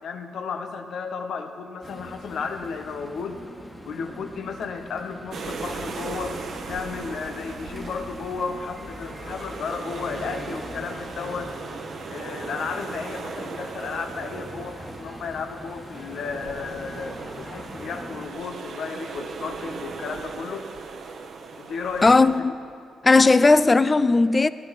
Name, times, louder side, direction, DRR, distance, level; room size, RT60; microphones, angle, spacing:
voice 1, 0.0-3.4 3.9-6.4 6.7-11.5 12.1-20.6 21.6-22.3, left 5 dB, 70° left, 1.0 m, -33 dB
sound 1, 1.8-18.3, equal, 5° left, 1.5 m, -41 dB
sound 2, 5.3-22.4, right 4 dB, 60° right, 1.0 m, -38 dB
voice 2, 22.0-22.5 23.0-24.5, left 3 dB, 25° left, 0.4 m, -16 dB
17.5 x 11.0 x 4.1 m
cardioid pair, 85°, 0 cm